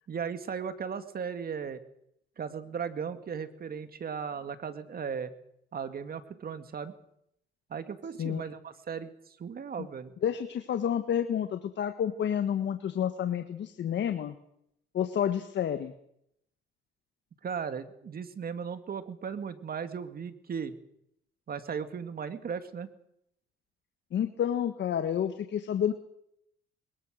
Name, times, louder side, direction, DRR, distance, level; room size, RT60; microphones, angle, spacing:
voice 1, 0.1-1.8 2.4-5.3 5.7-6.9 7.7-10.1 17.4-20.8 21.5-22.9, right 6 dB, 50° right, 10 dB, 2.2 m, -36 dB
voice 2, 8.2-8.5 10.2-14.4 14.9-15.9 24.1-25.9, left 9 dB, 65° left, 8 dB, 1.6 m, -29 dB
22.0 x 21.0 x 6.6 m, 0.74 s
cardioid pair, 90°, 20 cm